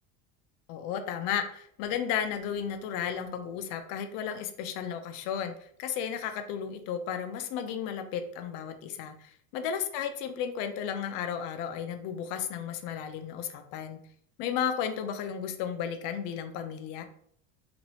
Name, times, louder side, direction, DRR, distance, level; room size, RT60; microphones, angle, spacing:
voice 1, 0.7-14.0 14.4-17.0, left 8 dB, 65° left, 7 dB, 0.5 m, -34 dB
3.0 x 2.5 x 2.8 m, 0.62 s
cardioid pair, 145°, 34 cm